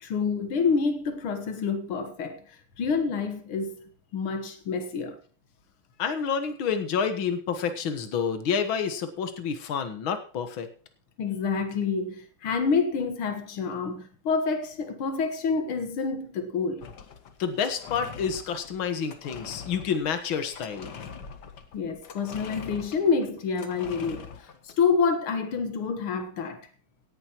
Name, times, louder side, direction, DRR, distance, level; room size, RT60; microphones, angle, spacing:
voice 1, 0.0-5.2 11.2-16.9 21.7-24.3 24.6-26.7, left 5 dB, 90° left, 2.3 m, -28 dB
voice 2, 6.0-10.7 17.4-20.9, left 6 dB, 75° left, 2.3 m, -29 dB
sound 1, 16.8-24.8, left 6 dB, 55° left, 1.8 m, -43 dB
17.5 x 11.0 x 3.0 m
omnidirectional pair, 2.3 m